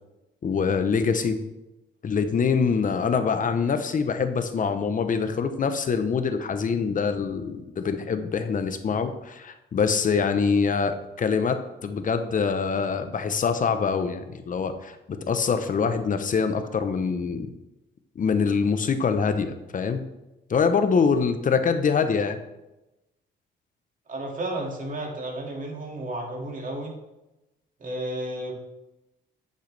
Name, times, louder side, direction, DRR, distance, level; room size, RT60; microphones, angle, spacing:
voice 1, 0.4-1.4 2.0-17.5 18.2-20.0 20.5-22.4, left 5 dB, 40° left, 8 dB, 0.8 m, -24 dB
voice 2, 24.1-26.9 27.8-28.6, right 1 dB, 40° right, 0 dB, 2.2 m, -32 dB
8.2 x 6.6 x 3.3 m, 0.98 s
cardioid pair, 90°, 20 cm